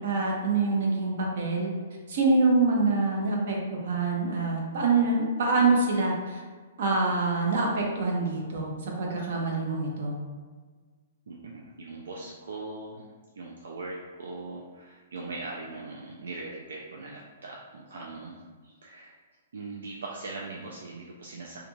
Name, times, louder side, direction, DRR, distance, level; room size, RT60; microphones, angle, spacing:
voice 1, 0.0-1.7 2.1-6.4 6.8-8.7 9.0-10.2, right 3 dB, 60° right, -1 dB, 0.7 m, -25 dB
voice 2, 11.3-13.1 13.4-19.2 19.5-21.6, right 3 dB, 85° right, -3 dB, 0.4 m, -40 dB
2.4 x 2.2 x 3.0 m, 1.5 s
hypercardioid pair, 155°, 0 cm